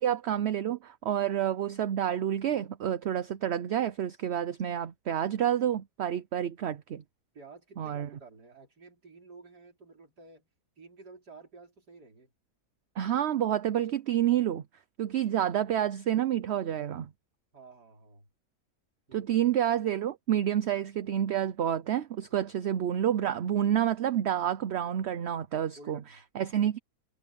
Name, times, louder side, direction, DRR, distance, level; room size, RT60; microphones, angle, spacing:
voice 1, 0.0-7.0 7.8-8.1 13.0-14.6 15.0-17.1 19.1-26.0 26.4-26.8, right 10 dB, 55° right, 0.7 m, -29 dB
voice 2, 7.3-10.5 10.8-12.3 17.5-18.3 19.1-19.5 25.7-26.2, right 3 dB, 80° right, 4.6 m, -52 dB
omnidirectional pair, 1.7 m